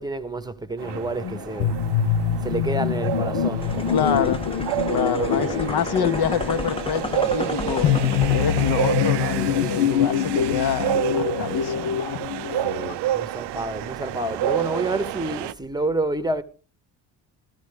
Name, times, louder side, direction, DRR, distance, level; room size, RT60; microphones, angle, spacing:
voice 1, 0.0-1.8 2.4-4.4 5.2-6.2 12.6-16.4, right 2 dB, 10° right, 1.0 m, -29 dB
sound 1, 0.8-12.9, left 9 dB, 75° left, 0.8 m, -25 dB
sound 2, 0.8-15.5, right 13 dB, 60° right, 0.5 m, -29 dB
sound 3, 3.6-8.8, left 2 dB, 10° left, 0.7 m, -32 dB
voice 2, 3.9-4.4 4.9-7.9 8.3-12.0, left 7 dB, 50° left, 1.0 m, -26 dB
14.5 x 12.5 x 3.4 m
supercardioid pair, 60°, 48 cm